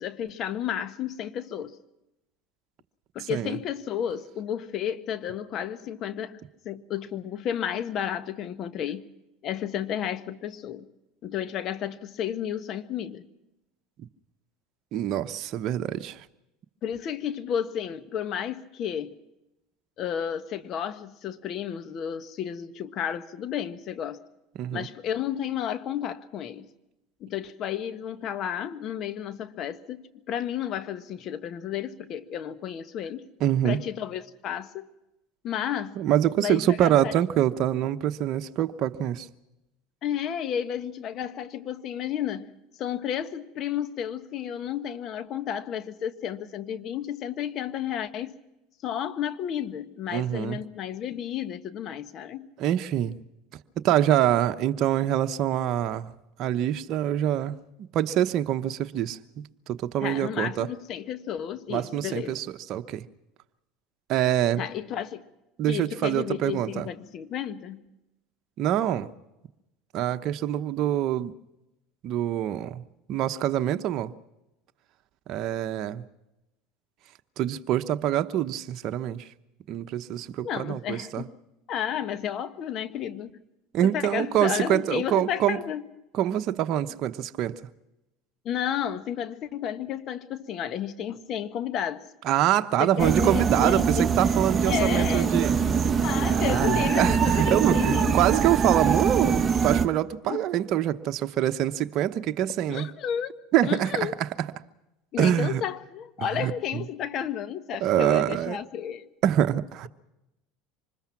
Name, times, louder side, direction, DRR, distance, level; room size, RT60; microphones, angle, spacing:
voice 1, 0.0-1.8 3.1-9.1 9.4-10.9 11.2-13.2 16.8-19.2 20.0-24.2 24.7-26.7 27.2-33.3 33.6-34.9 35.4-36.0 36.4-37.4 40.0-42.5 42.8-48.3 48.8-52.5 60.0-62.3 64.6-65.2 65.7-67.8 80.4-81.3 81.7-83.3 83.8-85.9 88.4-92.0 92.8-94.1 94.7-95.4 96.0-98.3 100.2-100.4 102.7-103.3 103.6-104.1 105.1-109.1, left 9 dB, 50° left, 1.4 m, -32 dB
voice 2, 14.9-16.3 24.6-24.9 33.4-33.8 36.0-39.3 50.1-50.6 52.6-53.2 53.8-56.1 56.4-57.6 57.9-59.2 59.7-60.7 61.7-63.0 64.1-64.6 65.6-66.9 68.6-69.1 69.9-71.3 72.0-72.8 73.1-74.1 75.3-76.0 77.4-79.3 79.7-81.2 83.7-85.6 86.1-87.5 92.2-95.6 96.2-102.9 103.5-104.3 105.2-105.6 106.4-106.8 107.8-108.6 109.2-109.9, right 11 dB, 50° right, 0.9 m, -25 dB
sound 1, 93.0-99.9, right 6 dB, 25° right, 1.4 m, -23 dB
25.0 x 20.5 x 5.9 m
hypercardioid pair, 90°, 0 cm